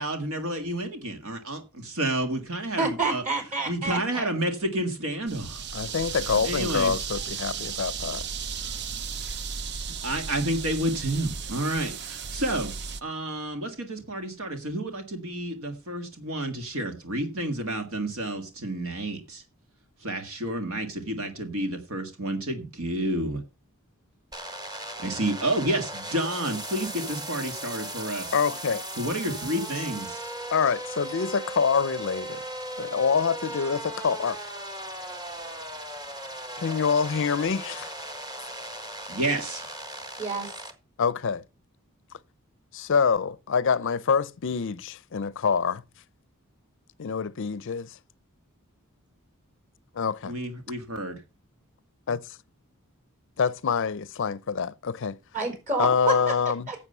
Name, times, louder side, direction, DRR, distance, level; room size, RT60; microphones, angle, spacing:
voice 1, 0.0-3.2 3.7-5.6 6.4-6.9 10.0-12.7 13.0-19.4 20.0-23.4 25.0-28.3 29.0-30.2 39.1-39.7 50.3-51.2, right 1 dB, 70° right, 1.8 m, -30 dB
voice 2, 2.8-4.3 40.2-40.5 55.3-56.3 56.7-56.8, right 2 dB, 35° right, 4.6 m, -28 dB
sound 1, 5.3-13.0, right 6 dB, 55° right, 0.6 m, -35 dB
voice 3, 5.7-8.2 28.3-28.8 30.5-32.5 32.8-34.4 36.6-37.9 41.0-41.4 42.7-45.8 47.0-48.0 49.9-50.3 52.1-52.2 53.4-55.2 55.8-56.7, left 6 dB, 60° left, 0.5 m, -26 dB
sound 2, 24.3-40.7, right 1 dB, 20° right, 1.5 m, -37 dB
11.0 x 7.4 x 5.4 m
head